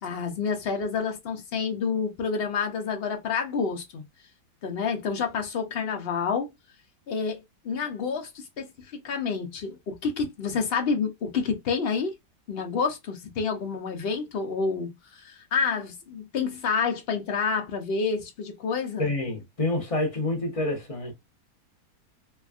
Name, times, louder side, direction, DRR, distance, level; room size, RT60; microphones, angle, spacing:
voice 1, 0.0-4.0 4.6-6.5 7.1-7.4 7.6-8.7 8.9-12.1 12.5-19.1, left 5 dB, 70° left, 0.5 m, -28 dB
voice 2, 19.0-21.1, left 2 dB, 30° left, 0.7 m, -28 dB
3.3 x 2.2 x 2.4 m
omnidirectional pair, 1.8 m